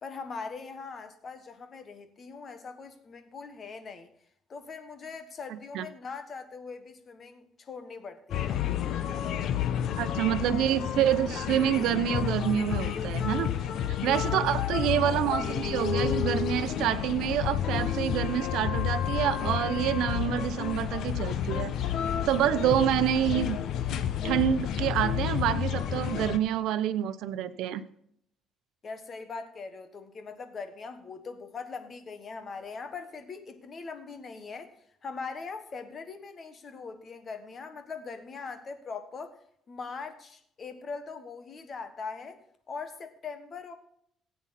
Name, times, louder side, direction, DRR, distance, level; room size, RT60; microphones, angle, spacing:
voice 1, 0.0-4.1 4.5-8.6 14.2-14.6 28.8-39.4 39.7-42.4 42.7-43.7, left 4 dB, 35° left, 8 dB, 1.3 m, -41 dB
sound 1, 8.3-26.4, left 9 dB, 60° left, 0.9 m, -30 dB
voice 2, 10.0-13.5 14.0-21.7 22.3-23.6 23.9-27.8, right 11 dB, 80° right, 12 dB, 0.8 m, -27 dB
16.0 x 8.6 x 4.3 m, 0.69 s
cardioid pair, 155°, 0 cm